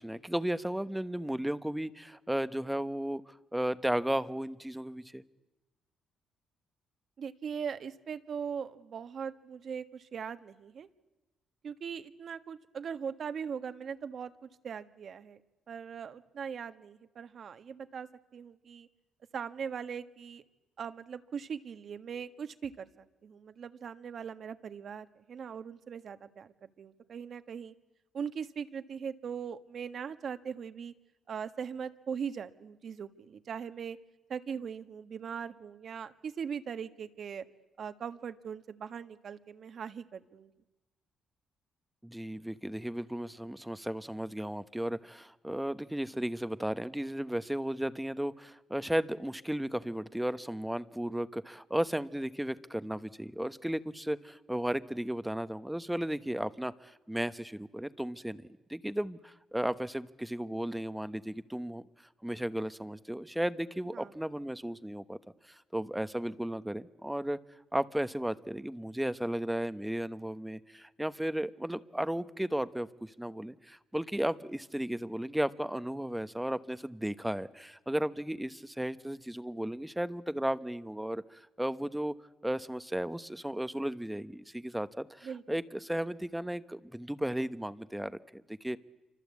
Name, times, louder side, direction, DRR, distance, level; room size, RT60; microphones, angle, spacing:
voice 1, 0.0-5.2 42.0-61.8 62.2-65.2 65.5-67.4 67.7-82.1 82.4-88.8, right 1 dB, 5° right, 13 dB, 1.0 m, -35 dB
voice 2, 7.2-10.9 11.6-15.4 15.7-18.9 19.3-20.4 20.8-27.7 28.1-30.9 31.3-34.0 34.3-37.4 37.8-40.5 63.9-64.1 85.2-85.4, right 7 dB, 55° right, 10 dB, 1.6 m, -40 dB
28.0 x 25.0 x 8.4 m, 1.1 s
cardioid pair, 90°, 0 cm